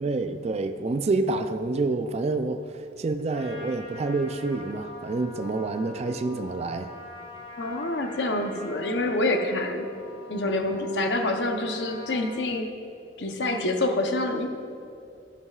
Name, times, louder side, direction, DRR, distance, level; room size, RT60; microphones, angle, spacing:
voice 1, 0.0-6.9, right 3 dB, 40° right, 8 dB, 0.4 m, -28 dB
Trumpet, 3.3-12.4, left 2 dB, 35° left, 1.9 m, -44 dB
voice 2, 7.6-9.9 10.3-12.7 13.2-14.5, left 2 dB, 75° left, 5 dB, 0.8 m, -26 dB
11.0 x 11.0 x 2.4 m, 2.5 s
head